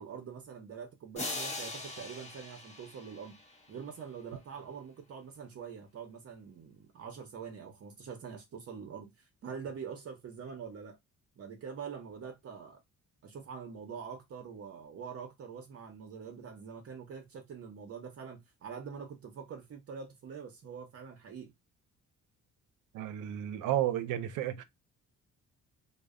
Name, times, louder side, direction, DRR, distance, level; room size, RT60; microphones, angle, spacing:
voice 1, 0.0-3.4 3.7-9.1 9.4-11.0 11.4-12.8 13.2-21.5, right 6 dB, 50° right, 0.7 m, -44 dB
sound 1, 1.2-3.8, left 2 dB, 20° left, 0.9 m, -41 dB
voice 2, 22.9-24.6, right 12 dB, 90° right, 0.5 m, -32 dB
2.0 x 2.0 x 3.6 m
cardioid pair, 110°, 30 cm